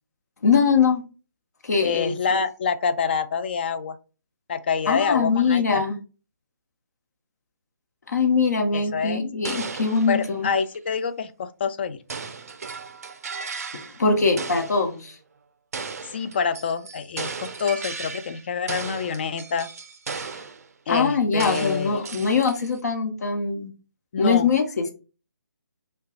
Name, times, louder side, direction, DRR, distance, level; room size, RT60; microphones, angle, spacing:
voice 1, 0.4-1.0 1.6-2.1 4.9-6.0 8.1-10.5 13.7-15.2 20.3-20.4 20.9-23.7 24.2-24.9, left 5 dB, 55° left, 3 dB, 0.9 m, -22 dB
voice 2, 1.8-4.0 4.5-5.8 8.7-9.2 10.1-12.0 16.0-19.7 20.9-22.0 24.1-24.5, left 6 dB, 35° left, 10 dB, 0.3 m, -26 dB
sound 1, 9.4-10.9 12.1-14.1 14.4-14.9 15.7-18.4 18.7-20.7 21.4-22.8, right 5 dB, 50° right, 0.4 m, -35 dB
5.5 x 2.2 x 2.4 m, 0.33 s
figure-of-eight pair, 145°, 10 cm